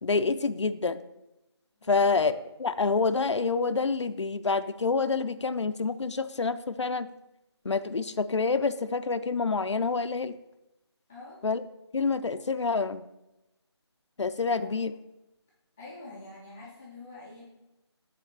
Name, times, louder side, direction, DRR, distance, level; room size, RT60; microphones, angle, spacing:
voice 1, 0.0-1.0 1.9-7.1 7.6-10.4 11.4-11.6 11.9-13.0 14.2-14.9, left 4 dB, 85° left, 11 dB, 0.5 m, -27 dB
voice 2, 1.8-2.2 11.1-11.4 12.3-12.4 14.6-14.9 15.8-17.6, left 2 dB, 5° left, -8 dB, 0.4 m, -47 dB
7.4 x 3.3 x 5.8 m, 0.96 s
figure-of-eight pair, 160°, 15 cm